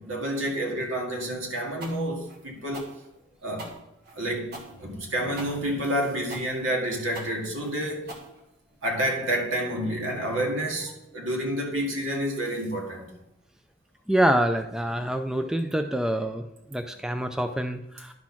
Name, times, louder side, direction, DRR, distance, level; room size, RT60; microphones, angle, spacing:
voice 1, 0.0-2.9 3.4-3.8 4.1-8.1 8.8-13.1, right 1 dB, 85° right, 2.0 m, -29 dB
sound 1, 1.8-8.9, right 1 dB, 50° right, 1.6 m, -43 dB
voice 2, 14.1-16.4 16.7-18.1, right 1 dB, 5° right, 0.3 m, -26 dB
10.5 x 4.1 x 5.9 m
head